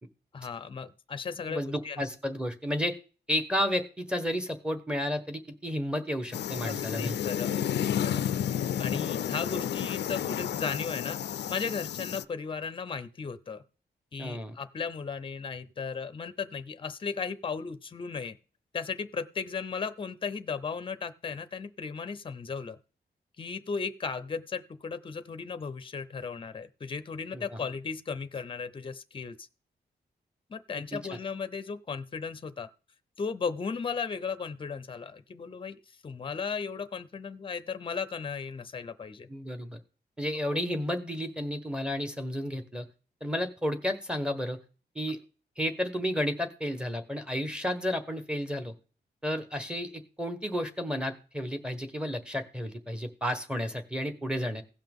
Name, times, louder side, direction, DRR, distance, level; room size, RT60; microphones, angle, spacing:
voice 1, 0.3-2.1 6.7-8.2 8.8-11.2 11.5-13.6 14.1-18.4 18.7-22.8 23.4-29.5 30.5-32.7 33.2-39.3 40.5-40.6, left 5 dB, 30° left, 12 dB, 0.6 m, -36 dB
voice 2, 1.5-3.0 3.3-7.1 14.2-14.5 27.3-27.6 30.9-31.0 39.3-39.8 40.2-42.9 43.2-44.6 44.9-45.2 45.6-48.7 49.2-54.6, equal, 5° right, 7 dB, 1.2 m, -32 dB
sound 1, 6.3-12.2, left 10 dB, 80° left, 0.4 m, -31 dB
16.5 x 5.7 x 3.6 m, 0.35 s
wide cardioid pair, 160°, 18 cm